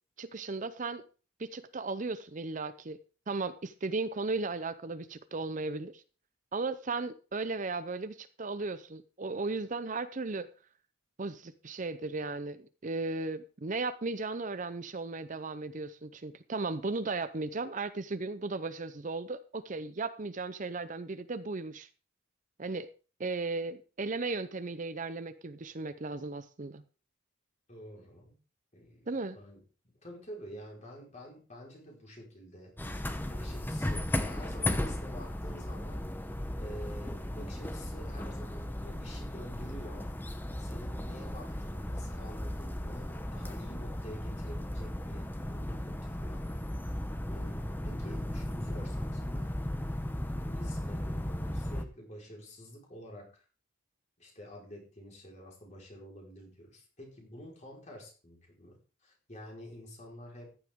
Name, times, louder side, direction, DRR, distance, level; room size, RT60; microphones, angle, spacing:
voice 1, 0.2-1.0 1.4-3.0 3.3-6.0 6.5-10.5 11.2-21.9 22.6-22.9 23.2-26.8 29.1-29.4, right 3 dB, 40° right, 12 dB, 0.6 m, -36 dB
voice 2, 27.7-28.4 28.7-40.1 40.6-46.5 46.9-49.5 50.4-53.5 54.2-60.5, equal, 35° left, -1 dB, 4.6 m, -49 dB
sound 1, 32.8-51.8, left 1 dB, 10° left, 0.8 m, -36 dB
14.5 x 11.0 x 3.7 m, 0.37 s
head